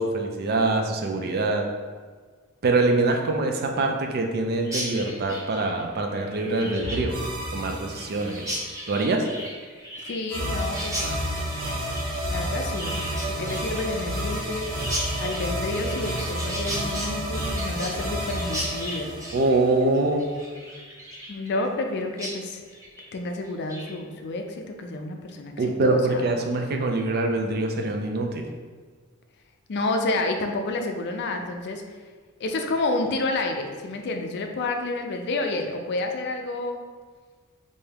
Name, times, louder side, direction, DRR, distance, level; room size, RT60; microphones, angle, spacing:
voice 1, 0.0-1.7 2.6-7.2 7.5-8.6 8.9-9.3 19.3-20.3 25.6-28.5, right 2 dB, 45° right, 3 dB, 0.4 m, -24 dB
Chirp tweet, 4.6-21.9 22.2-22.3 22.7-23.1 23.4-23.9, equal, 15° right, 0.8 m, -36 dB
sound 1, 6.8-8.7 10.3-20.0, equal, 75° right, 0.8 m, -30 dB
voice 2, 10.0-11.1 12.3-14.8 15.2-19.2 21.3-22.6 23.1-26.3 29.7-31.8 32.4-36.8, left 2 dB, 55° left, 4 dB, 0.4 m, -29 dB
3.4 x 2.7 x 3.4 m, 1.5 s
head